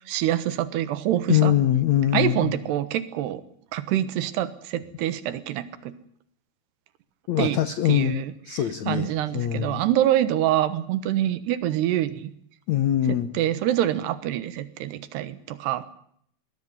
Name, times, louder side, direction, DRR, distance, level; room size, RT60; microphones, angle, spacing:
voice 1, 0.1-1.6 2.1-3.4 3.7-5.9 7.4-7.6 7.9-8.3 8.9-12.3 13.1-15.9, right 12 dB, 80° right, 14 dB, 3.3 m, -25 dB
voice 2, 1.3-2.6 7.3-9.8 12.7-13.3, left 12 dB, 75° left, 12 dB, 1.6 m, -23 dB
21.5 x 16.5 x 9.6 m, 0.66 s
omnidirectional pair, 4.8 m